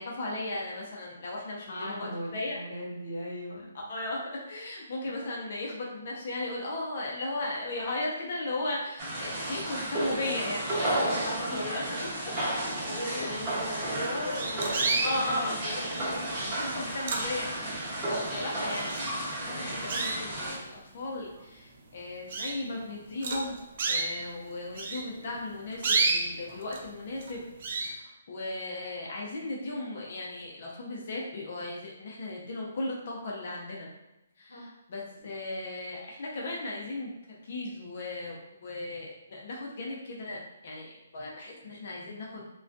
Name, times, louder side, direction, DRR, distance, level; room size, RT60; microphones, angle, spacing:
voice 1, 0.0-2.6 3.9-4.2 4.5-12.3 13.0-13.3 13.5-13.7 14.3-15.8 16.3-17.8 18.1-19.0 19.4-23.6 23.9-33.9 34.4-42.4, left 2 dB, 55° left, -2 dB, 0.6 m, -36 dB
voice 2, 1.7-3.7 10.7-12.1 12.4-16.2 16.6-16.8 18.4-18.7 19.5-19.8 34.5-34.7, left 1 dB, 75° left, -3 dB, 1.0 m, -38 dB
sound 1, 9.0-20.6, right 1 dB, 25° right, 0.8 m, -33 dB
sound 2, 13.7-13.8 14.3-15.2 15.9-16.3 16.8-17.7 18.2-18.3 18.7-19.4 19.9-20.6 21.2-21.3 21.7-21.8 22.3-22.6 23.2-24.1 24.8-26.8 27.2-27.4 27.6-27.9, right 3 dB, 50° right, 0.4 m, -30 dB
2.3 x 2.2 x 2.5 m, 0.95 s
hypercardioid pair, 150°, 0 cm